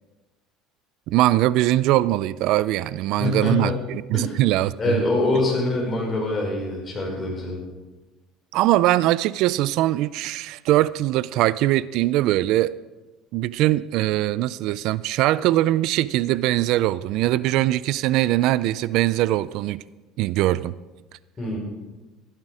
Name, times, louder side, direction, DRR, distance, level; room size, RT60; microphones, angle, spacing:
voice 1, 1.1-5.0 8.5-12.7 13.3-19.8 20.2-20.7, right 15 dB, 70° right, 18 dB, 0.4 m, -21 dB
voice 2, 3.2-3.8 4.1-4.3 4.8-7.6 21.4-21.6, left 2 dB, 25° left, -1 dB, 5.4 m, -24 dB
14.5 x 12.0 x 4.9 m, 1.2 s
cardioid pair, 120°, 0 cm